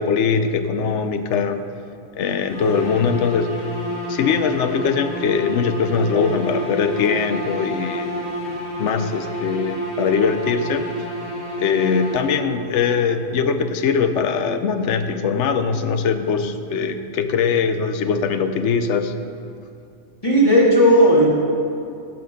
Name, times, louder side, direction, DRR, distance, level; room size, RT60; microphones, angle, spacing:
voice 1, 0.0-1.6 2.1-3.5 4.0-8.2 8.8-10.8 11.6-19.1, left 6 dB, 75° left, 9 dB, 1.0 m, -21 dB
sound 1, 2.5-12.7, equal, 50° left, 1.7 m, -29 dB
voice 2, 20.2-21.3, equal, 30° left, -7 dB, 2.4 m, -13 dB
12.5 x 6.9 x 5.3 m, 2.6 s
omnidirectional pair, 1.2 m